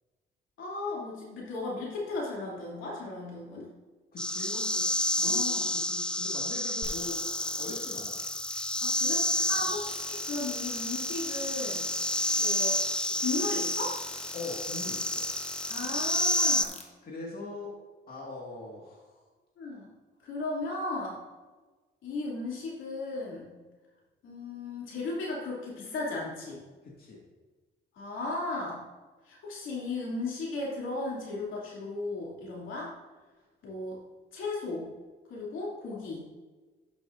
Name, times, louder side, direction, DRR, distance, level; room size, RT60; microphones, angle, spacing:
voice 1, 0.6-3.7 4.5-4.6 5.2-5.7 8.8-11.8 12.4-12.8 13.2-14.0 15.7-16.8 19.6-19.9 20.2-21.2 22.0-23.5 24.2-26.6 27.9-28.8 29.3-32.9 33.6-34.0 34.3-34.9 35.3-36.3, left 2 dB, 80° left, -4 dB, 2.8 m, -36 dB
voice 2, 4.1-4.5 5.2-5.4 5.7-7.2 7.6-8.2 9.6-9.8 14.3-15.2 17.0-17.7 18.1-19.3 26.8-27.2, left 3 dB, 50° left, -4 dB, 2.0 m, -41 dB
sound 1, 4.2-16.6, left 1 dB, 5° left, 0.4 m, -30 dB
sound 2, 6.8-16.8, left 3 dB, 30° left, 1.3 m, -44 dB
12.0 x 6.2 x 2.6 m, 1.3 s
cardioid pair, 90°, 20 cm